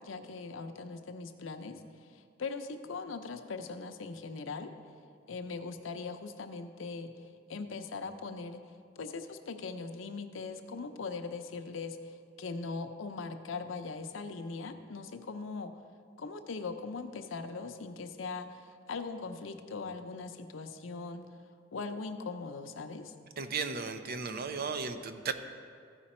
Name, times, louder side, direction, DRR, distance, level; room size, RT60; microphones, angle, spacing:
voice 1, 0.0-4.7 5.3-8.6 9.0-15.7 16.2-21.2 21.7-23.1, left 4 dB, 75° left, 6 dB, 0.6 m, -40 dB
voice 2, 23.4-25.3, right 5 dB, 50° right, 8 dB, 0.5 m, -35 dB
14.5 x 5.1 x 4.3 m, 2.2 s
head